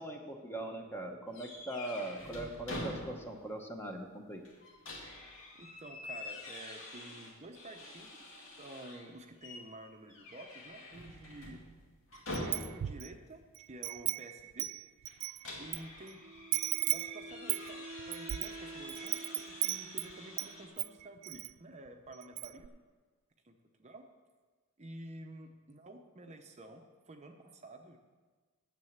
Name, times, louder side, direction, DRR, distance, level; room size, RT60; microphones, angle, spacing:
voice 1, 0.0-4.4, right 1 dB, 10° left, 3 dB, 0.9 m, -41 dB
sound 1, 1.3-3.5 3.8-3.9 4.4-9.1 9.4-9.7 10.1-13.0 15.1-20.7, left 1 dB, 60° left, 2.1 m, -46 dB
voice 2, 5.6-11.6 12.3-13.4 13.7-14.7 15.1-15.2 15.5-16.2 16.9-22.7 23.4-24.1 24.8-28.0, right 1 dB, 30° right, 5 dB, 0.7 m, -50 dB
Wind chime, 12.3-13.1 13.5-15.8 16.1-16.2 16.5-20.5 20.8-21.5 21.9-22.0 22.2-22.7, right 18 dB, 90° right, 0.3 m, -36 dB
Wind instrument woodwind instrument, 16.2-21.2, right 3 dB, 70° right, 0.8 m, -50 dB
9.7 x 7.5 x 7.2 m, 1.4 s
head